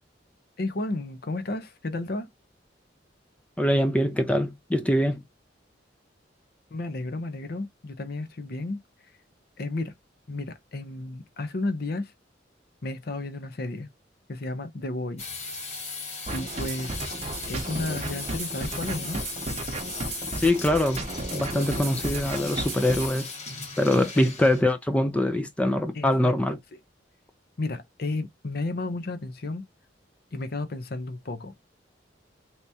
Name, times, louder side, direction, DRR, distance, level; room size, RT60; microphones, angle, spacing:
voice 1, 0.6-2.3 6.7-8.8 9.6-9.9 10.3-12.1 12.8-13.9 14.3-15.3 16.3-17.2 17.5-19.2 21.5-21.9 22.8-23.0 24.2-24.3 25.9-26.3 27.6-29.6 30.3-31.5, left 2 dB, 55° left, 0.7 m, -33 dB
voice 2, 3.6-5.2 20.4-21.0 21.3-23.3 23.8-26.6, left 1 dB, 5° left, 0.3 m, -23 dB
sound 1, 15.2-24.6, left 4 dB, 40° left, 1.4 m, -37 dB
sound 2, 16.3-23.1, right 2 dB, 35° right, 0.7 m, -34 dB
3.3 x 2.9 x 2.7 m
head